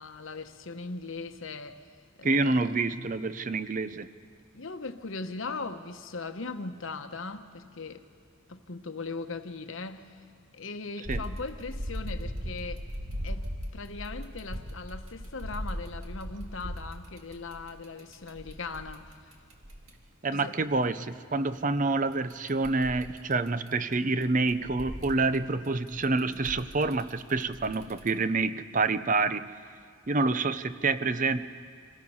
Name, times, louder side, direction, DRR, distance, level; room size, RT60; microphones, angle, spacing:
voice 1, 0.0-1.8 2.2-2.8 4.5-8.0 8.5-10.1 10.5-12.8 13.2-19.3 20.3-20.6, left 3 dB, 70° left, 1.0 m, -39 dB
voice 2, 2.2-4.1 11.1-11.2 20.2-29.5 30.1-31.5, right 3 dB, 40° right, 0.6 m, -27 dB
sound 1, 11.0-19.9 22.1-23.9 24.2-28.1, equal, 85° right, 2.2 m, -39 dB
26.5 x 18.5 x 5.6 m
head